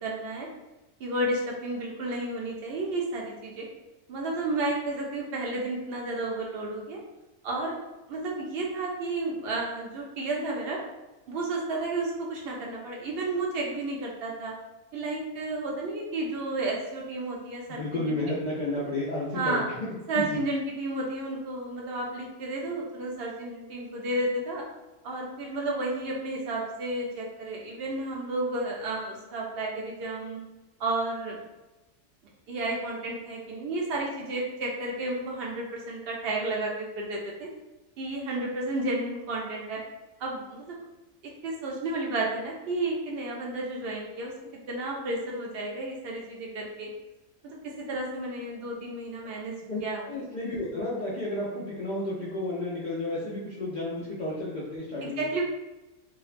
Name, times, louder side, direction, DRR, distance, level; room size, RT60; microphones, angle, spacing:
voice 1, 0.0-0.5 1.0-3.7 4.1-7.0 7.4-7.7 8.1-10.8 11.3-14.5 14.9-18.2 19.3-19.7 20.1-24.6 25.0-30.4 30.8-31.4 32.5-37.5 38.0-39.8 40.2-40.8 41.4-44.3 44.7-46.9 47.4-49.5 49.8-50.0 55.0-55.4, right 2 dB, 60° right, -1 dB, 0.6 m, -32 dB
voice 2, 17.7-20.4 49.7-55.3, left 2 dB, 80° left, -7 dB, 0.4 m, -32 dB
2.5 x 2.1 x 2.4 m, 1.0 s
omnidirectional pair, 1.4 m